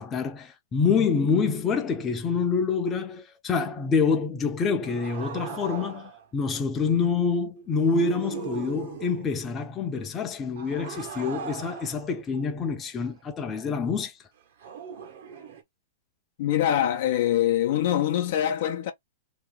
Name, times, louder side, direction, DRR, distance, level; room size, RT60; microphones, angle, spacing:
voice 1, 0.0-14.1, left 5 dB, 20° left, 0.8 m, -26 dB
sound 1, 4.8-6.3 7.7-9.4 10.6-13.2 14.6-15.6, right 6 dB, 60° right, 1.4 m, -39 dB
voice 2, 16.4-18.9, left 11 dB, 60° left, 0.7 m, -24 dB
3.0 x 2.6 x 3.7 m
hypercardioid pair, 120°, 0 cm